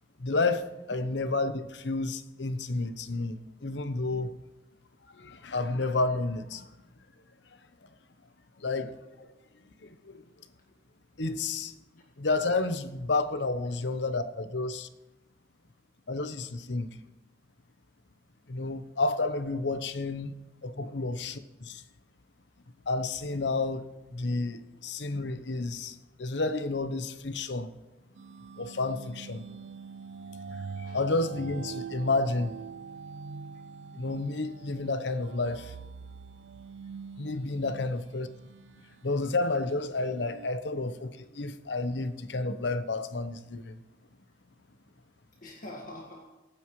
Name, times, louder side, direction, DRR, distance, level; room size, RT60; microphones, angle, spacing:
voice 1, 0.2-4.3 5.1-6.7 8.6-8.9 9.8-10.2 11.2-11.8 12.2-14.9 16.1-16.9 18.5-20.4 20.6-21.8 22.9-27.7 28.6-29.4 30.5-32.5 33.9-35.7 37.2-38.3 39.0-43.8, left 3 dB, 75° left, 0.9 m, -31 dB
sound 1, 28.1-40.5, right 5 dB, 75° right, 0.5 m, -44 dB
voice 2, 45.4-46.2, left 1 dB, 50° left, 1.9 m, -46 dB
23.5 x 9.4 x 3.2 m
head